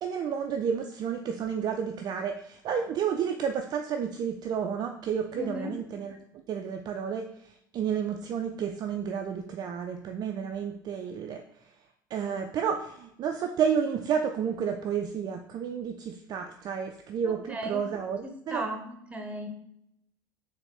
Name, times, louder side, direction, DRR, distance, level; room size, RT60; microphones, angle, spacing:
voice 1, 0.0-6.2 6.5-7.3 7.7-11.4 12.1-18.7, right 7 dB, 35° right, 5 dB, 0.4 m, -31 dB
voice 2, 5.4-5.8 17.3-17.8 18.2-19.5, right 1 dB, 10° right, 4 dB, 0.9 m, -36 dB
4.1 x 2.5 x 3.8 m, 0.77 s
figure-of-eight pair, 65°, 11 cm